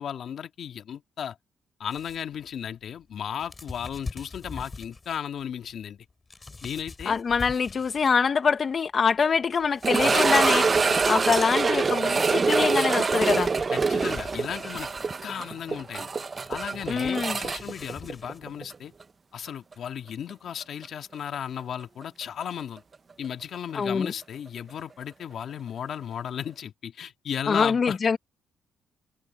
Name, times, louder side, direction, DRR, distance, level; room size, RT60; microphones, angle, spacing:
voice 1, 0.0-1.4 1.8-6.1 6.6-7.2 10.0-10.2 10.9-11.0 13.7-16.1 16.5-18.9 19.3-22.8 23.2-28.0, left 8 dB, 60° left, 2.0 m, -35 dB
sound 1, 1.9-8.3 8.6-11.9 12.6-12.7 12.9-18.7, left 3 dB, 25° left, 7.2 m, -44 dB
voice 2, 7.1-13.5 16.9-17.4 23.7-24.1 27.5-28.2, left 5 dB, 45° left, 1.1 m, -24 dB
sound 2, 9.8-18.8 19.0-19.1 19.7-19.8 22.4-22.5, right 4 dB, 35° right, 0.8 m, -25 dB
cardioid pair, 90°, 0 cm